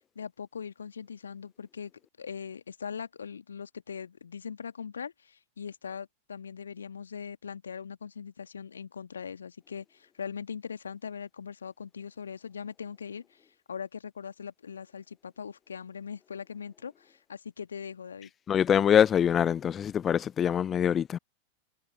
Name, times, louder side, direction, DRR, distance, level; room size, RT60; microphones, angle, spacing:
voice 1, 0.2-1.9 2.2-13.4 13.7-18.3, left 6 dB, 70° left, 1.9 m, -41 dB
voice 2, 18.5-21.2, left 9 dB, 25° left, 0.3 m, -24 dB
figure-of-eight pair, 90°, 0 cm